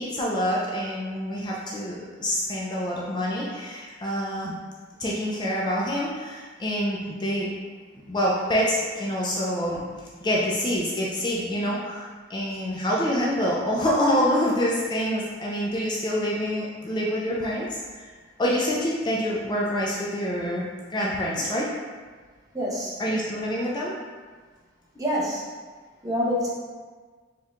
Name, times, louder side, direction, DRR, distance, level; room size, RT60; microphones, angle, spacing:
voice 1, 0.0-4.6 5.0-7.5 8.1-9.8 10.2-17.8 18.4-20.6 20.9-21.7 23.0-23.9, equal, 25° left, -4 dB, 0.4 m, -26 dB
voice 2, 22.5-23.0 25.0-25.4 26.0-26.5, equal, 20° right, -6 dB, 0.8 m, -26 dB
4.4 x 3.5 x 2.4 m, 1.5 s
head